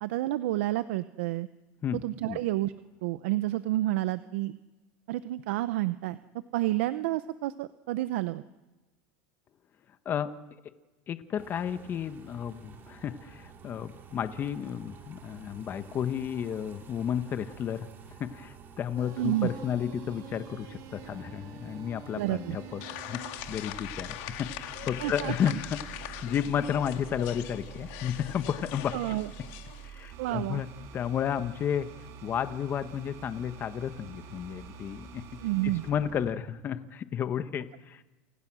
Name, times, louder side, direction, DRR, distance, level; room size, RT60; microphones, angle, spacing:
voice 1, 0.0-1.5 1.9-2.7 3.0-4.6 5.1-6.2 6.5-8.4 19.2-19.5 22.1-22.6 25.0-25.6 28.9-29.3 30.2-30.6 35.4-35.8, right 16 dB, 75° right, 13 dB, 0.8 m, -30 dB
voice 2, 11.1-17.9 18.2-22.8 23.1-23.2 23.5-29.0 29.8-30.7 30.9-31.9 32.2-35.2 35.6-38.1, left 9 dB, 30° left, 10 dB, 1.5 m, -32 dB
sound 1, 11.4-27.4, right 7 dB, 30° right, 3.2 m, -51 dB
sound 2, 19.0-36.3, right 8 dB, 50° right, 3.5 m, -47 dB
sound 3, 22.8-29.9, left 15 dB, 65° left, 2.2 m, -42 dB
29.5 x 28.5 x 6.4 m, 1.1 s
supercardioid pair, 135°, 7 cm